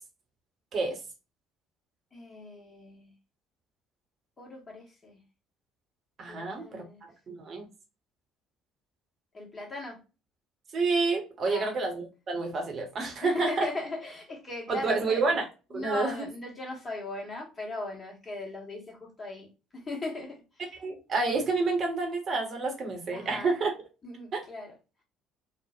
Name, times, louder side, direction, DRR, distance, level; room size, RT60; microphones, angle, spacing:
voice 1, 2.1-3.1 4.4-5.2 6.3-7.0 9.3-10.0 11.5-11.8 13.2-15.2 15.7-20.7 23.1-23.6 24.0-24.7, left 2 dB, 30° left, 0 dB, 1.2 m, -38 dB
voice 2, 6.2-6.8 7.3-7.6 10.7-13.7 14.7-15.4 15.7-16.3 20.8-23.7 24.3-24.4, right 3 dB, 40° right, 2 dB, 0.9 m, -29 dB
3.1 x 2.0 x 2.3 m, 0.30 s
figure-of-eight pair, 55°, 0 cm